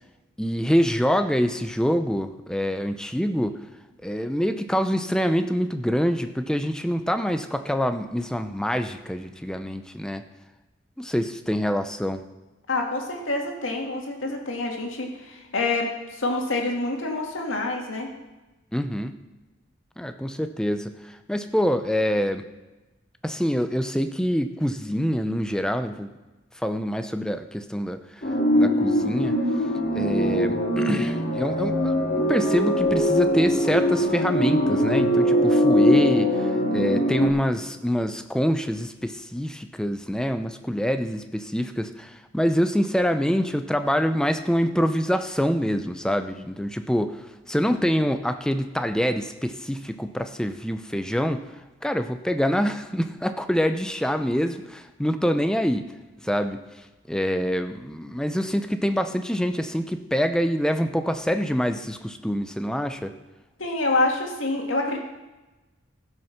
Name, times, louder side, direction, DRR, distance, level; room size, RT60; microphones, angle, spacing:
voice 1, 0.4-3.6 4.0-10.2 11.0-12.2 18.7-19.2 20.0-22.4 23.2-26.1 26.6-28.2 28.5-29.4 29.9-32.0 32.3-36.3 36.7-47.2 47.5-51.4 51.8-55.9 56.2-56.6 57.1-63.1, equal, 5° left, 8 dB, 0.5 m, -25 dB
voice 2, 12.7-18.1 63.6-65.0, left 2 dB, 85° left, 1 dB, 2.1 m, -27 dB
sound 1, 28.2-37.3, equal, 45° left, 2.0 m, -22 dB
15.5 x 6.3 x 5.9 m, 1.1 s
head